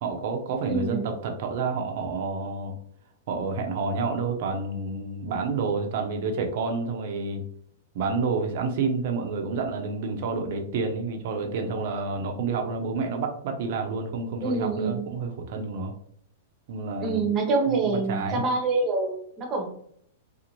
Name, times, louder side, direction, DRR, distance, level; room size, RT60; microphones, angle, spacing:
voice 1, 0.0-2.7 3.3-7.4 7.9-15.9 16.7-17.2 17.8-18.4, right 4 dB, 60° right, 4 dB, 0.6 m, -29 dB
voice 2, 0.6-1.1 14.4-15.1 17.0-19.7, right 3 dB, 30° right, 2 dB, 0.8 m, -26 dB
2.5 x 2.1 x 3.0 m, 0.66 s
hypercardioid pair, 120°, 0 cm